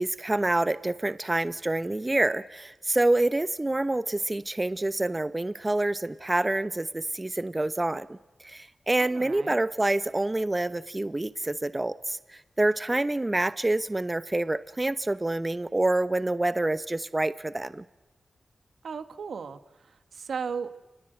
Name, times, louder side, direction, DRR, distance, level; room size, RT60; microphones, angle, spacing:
voice 1, 0.0-8.2 8.4-17.8, right 2 dB, 25° right, 13 dB, 1.0 m, -27 dB
voice 2, 9.0-9.6 18.8-20.8, right 6 dB, 85° right, 9 dB, 1.6 m, -36 dB
29.0 x 20.5 x 8.1 m, 1.1 s
cardioid pair, 55°, 0 cm